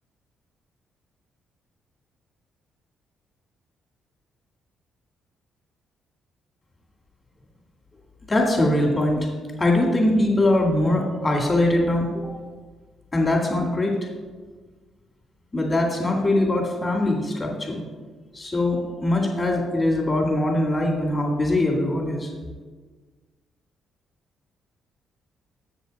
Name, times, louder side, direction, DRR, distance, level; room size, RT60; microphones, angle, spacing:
voice 1, 8.3-9.3 9.6-12.3 13.1-14.0 15.5-17.8 18.3-22.3, left 1 dB, 25° left, -1 dB, 2.0 m, -22 dB
7.5 x 6.5 x 4.1 m, 1.4 s
cardioid pair, 90°, 0 cm